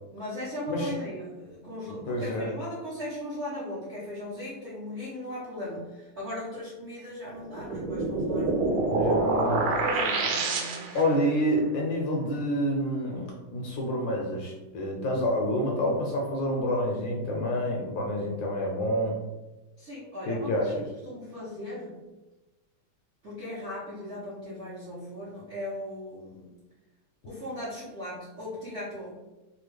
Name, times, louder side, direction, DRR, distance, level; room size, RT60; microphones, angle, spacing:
voice 1, 0.1-9.0 9.6-11.1 19.8-20.8 21.0-22.0 23.2-26.5 27.2-29.2, left 1 dB, 55° right, -10 dB, 0.7 m, -38 dB
voice 2, 1.9-2.5 8.9-9.7 10.9-19.2 20.3-20.8, equal, 70° left, -1 dB, 1.2 m, -28 dB
sound 1, 7.5-11.1, right 3 dB, 80° right, 1.4 m, -27 dB
3.5 x 2.1 x 3.2 m, 1.1 s
omnidirectional pair, 2.4 m